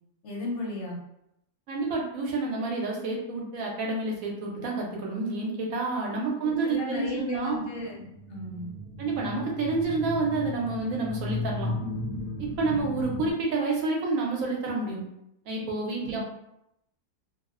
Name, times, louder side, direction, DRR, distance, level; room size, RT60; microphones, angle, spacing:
voice 1, 0.2-1.0 6.6-8.0 8.3-8.7 16.0-16.2, left 2 dB, 60° left, -3 dB, 0.8 m, -34 dB
voice 2, 1.7-7.6 9.0-11.7 12.4-15.0 15.5-16.2, right 3 dB, 70° right, -1 dB, 0.9 m, -29 dB
sound 1, 8.0-13.3, left 1 dB, 85° left, 1.2 m, -35 dB
2.6 x 2.0 x 2.3 m, 0.81 s
omnidirectional pair, 1.7 m